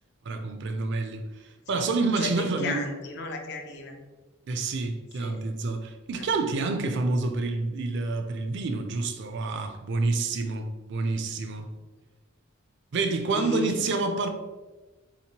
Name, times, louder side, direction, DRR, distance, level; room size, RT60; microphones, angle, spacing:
voice 1, 0.2-2.8 4.5-11.7 12.9-14.3, right 3 dB, 55° right, 6 dB, 0.4 m, -28 dB
voice 2, 2.2-4.0 5.2-5.5 6.2-6.3 13.3-13.9, left 3 dB, 55° left, 4 dB, 0.5 m, -34 dB
3.8 x 2.9 x 2.8 m, 1.2 s
head